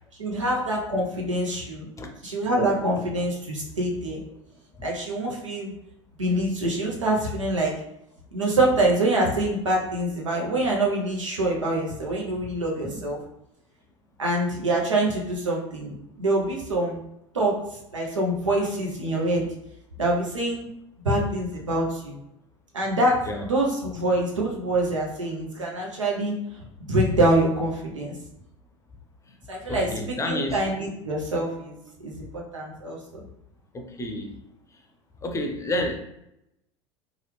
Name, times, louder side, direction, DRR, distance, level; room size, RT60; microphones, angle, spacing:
voice 1, 0.2-1.9 2.2-4.2 4.8-5.7 6.2-7.8 8.3-13.2 14.2-17.0 17.3-17.6 17.9-19.5 20.0-20.7 21.0-22.2 22.7-28.1 29.5-33.2, right 1 dB, 85° right, -2 dB, 0.8 m, -25 dB
voice 2, 29.7-30.7 33.7-34.4 34.7-34.8 35.2-36.0, left 1 dB, 20° left, 3 dB, 0.6 m, -30 dB
3.1 x 2.4 x 3.1 m, 0.83 s
figure-of-eight pair, 75°, 16 cm